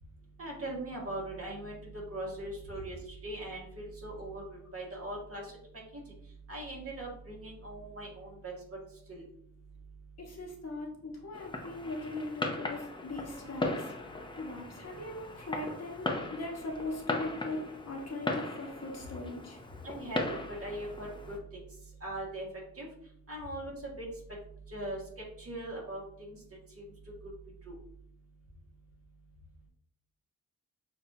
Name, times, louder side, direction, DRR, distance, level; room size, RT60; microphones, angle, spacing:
voice 1, 0.4-5.4 5.9-6.0 6.5-8.5 9.1-9.2 19.8-21.7 22.0-22.5 22.8-22.9 23.3-24.0 24.7-25.0 25.4-26.4 26.8-26.9 27.7-27.8, right 1 dB, 45° right, -3 dB, 1.7 m, -40 dB
voice 2, 10.2-19.6, left 2 dB, 50° left, 0 dB, 1.2 m, -40 dB
Fireworks, 11.3-21.4, left 2 dB, 15° left, 0.6 m, -38 dB
6.8 x 2.7 x 2.7 m, 0.64 s
wide cardioid pair, 125°, 33 cm